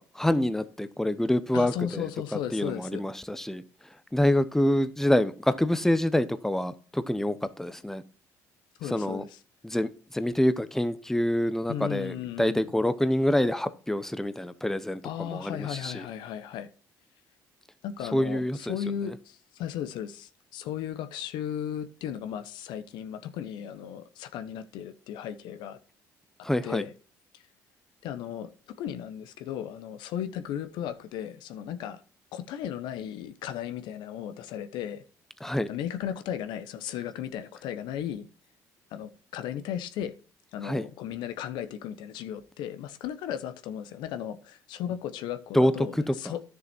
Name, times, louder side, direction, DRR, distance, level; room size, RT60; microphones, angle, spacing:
voice 1, 0.0-3.6 4.1-8.0 8.9-9.2 9.6-16.1 18.1-18.8 26.4-26.8 35.4-35.7 40.6-40.9 45.5-46.1, left 1 dB, 5° left, 0.9 m, -26 dB
voice 2, 1.5-3.0 8.8-9.4 11.7-12.7 15.0-16.7 17.8-25.8 26.6-26.9 27.3-27.4 28.0-28.5 28.8-32.0 32.3-35.0 35.7-38.3 38.9-40.1 40.5-46.4, left 10 dB, 75° left, 1.0 m, -35 dB
10.5 x 6.8 x 4.4 m
supercardioid pair, 65°, 8 cm